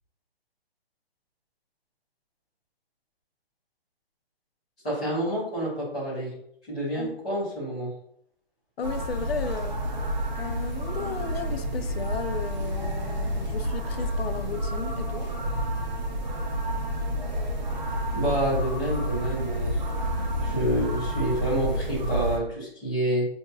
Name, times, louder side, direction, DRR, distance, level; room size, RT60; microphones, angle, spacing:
voice 1, 4.8-6.3 6.7-7.9 18.1-19.8 20.4-23.3, right 1 dB, 5° left, -11 dB, 0.6 m, -28 dB
voice 2, 8.8-15.3, left 6 dB, 75° left, 9 dB, 0.5 m, -35 dB
sound 1, 8.8-22.4, equal, 45° right, 0.8 m, -29 dB
5.2 x 2.8 x 2.2 m, 0.72 s
hypercardioid pair, 175°, 31 cm